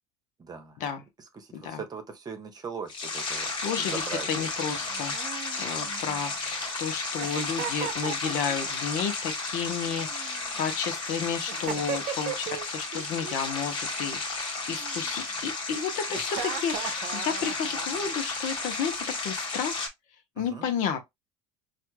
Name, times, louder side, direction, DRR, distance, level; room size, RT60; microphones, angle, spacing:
voice 1, 0.4-0.8 1.2-3.5 3.8-4.5 11.7-11.9 20.4-20.7, right 5 dB, 30° right, 1.0 m, -40 dB
sound 1, 2.9-19.9, left 3 dB, 35° left, 1.5 m, -33 dB
voice 2, 3.6-4.0 4.3-5.1 5.6-19.9 20.4-21.0, left 7 dB, 65° left, 0.9 m, -32 dB
Giggle, 4.7-6.5 7.2-8.8 9.8-10.8 11.5-12.7 12.9-13.5 14.7-15.4 16.1-18.2, right 10 dB, 55° right, 0.7 m, -38 dB
4.4 x 2.6 x 2.2 m
supercardioid pair, 95°, 14 cm